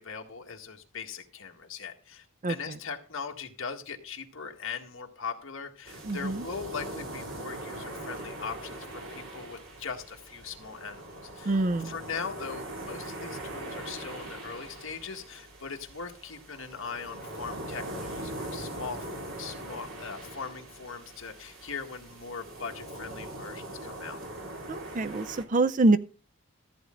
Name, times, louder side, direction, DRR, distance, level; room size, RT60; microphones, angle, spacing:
voice 1, 0.0-11.6 11.8-24.2, left 5 dB, 65° left, 1.8 m, -40 dB
voice 2, 2.4-2.8 6.0-6.5 11.5-11.9 24.7-26.0, right 2 dB, 35° right, 0.4 m, -25 dB
sound 1, 5.9-25.4, right 1 dB, 70° right, 2.8 m, -41 dB
14.0 x 8.6 x 3.8 m
head